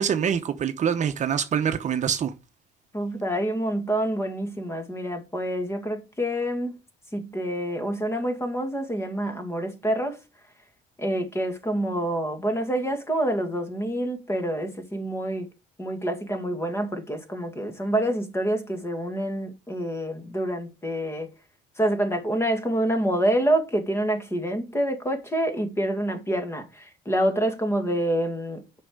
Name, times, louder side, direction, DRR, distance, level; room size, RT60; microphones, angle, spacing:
voice 1, 0.0-2.3, right 8 dB, 45° right, 0.9 m, -25 dB
voice 2, 2.9-6.8 7.1-10.2 11.0-15.5 15.8-21.3 21.8-28.8, right 1 dB, 15° left, 2.0 m, -27 dB
7.7 x 5.5 x 6.5 m
cardioid pair, 110°, 17 cm